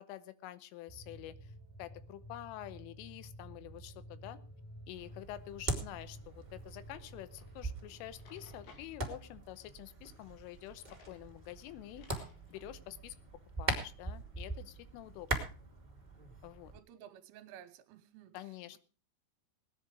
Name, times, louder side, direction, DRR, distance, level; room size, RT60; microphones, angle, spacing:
voice 1, 0.0-1.5 1.8-4.4 4.9-13.2 13.6-15.5 16.4-16.7 18.3-18.8, left 14 dB, 80° left, 15 dB, 3.5 m, -48 dB
sound 1, 0.9-8.7, right 1 dB, 5° left, 3.5 m, -52 dB
sound 2, 4.9-16.8, right 2 dB, 45° right, 0.5 m, -42 dB
Drawer open or close, 7.4-7.5 8.0-8.9 10.4-11.2 11.6-11.7 12.0-12.7, left 5 dB, 65° left, 4.5 m, -60 dB
voice 2, 16.7-18.4 18.7-18.8, right 10 dB, 80° right, 11 dB, 3.5 m, -54 dB
19.0 x 10.0 x 4.9 m, 0.35 s
omnidirectional pair, 5.7 m